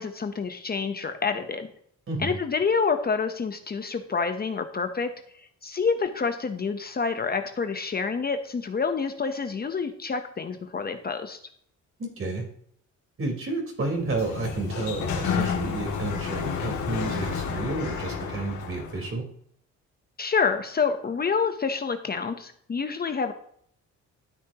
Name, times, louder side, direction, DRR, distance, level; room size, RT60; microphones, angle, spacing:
voice 1, 0.0-1.7 2.2-11.4 20.2-23.3, left 5 dB, 30° left, 7 dB, 0.9 m, -28 dB
voice 2, 12.0-12.4 13.2-19.2, right 3 dB, 45° right, 1 dB, 4.2 m, -31 dB
Sliding door, 13.9-19.0, left 6 dB, 75° left, 2.4 m, -30 dB
13.0 x 8.5 x 2.9 m, 0.66 s
cardioid pair, 90°, 30 cm